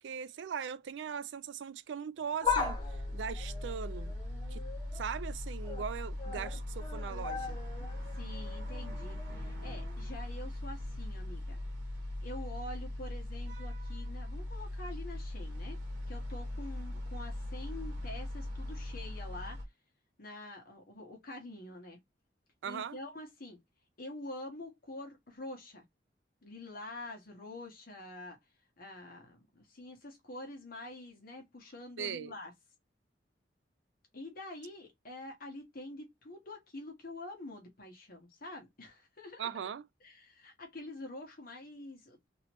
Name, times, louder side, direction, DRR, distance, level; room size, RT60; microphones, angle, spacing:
voice 1, 0.0-4.2 4.5-4.6 4.9-7.6 22.6-23.0 32.0-32.3 39.4-39.9, right 7 dB, 90° right, 0.4 m, -40 dB
sound 1, 2.2-5.0 5.4-5.9 6.2-10.1 10.5-10.6 11.6-11.7, left 5 dB, 30° left, 0.8 m, -39 dB
sound 2, 2.4-19.6, left 1 dB, 70° right, 1.4 m, -40 dB
voice 2, 8.1-11.6 12.2-15.8 16.1-19.6 20.2-22.0 22.6-23.6 24.0-25.8 26.4-28.4 28.8-32.5 34.1-39.5 40.0-42.3, left 1 dB, 55° left, 1.2 m, -46 dB
3.0 x 2.9 x 3.0 m
head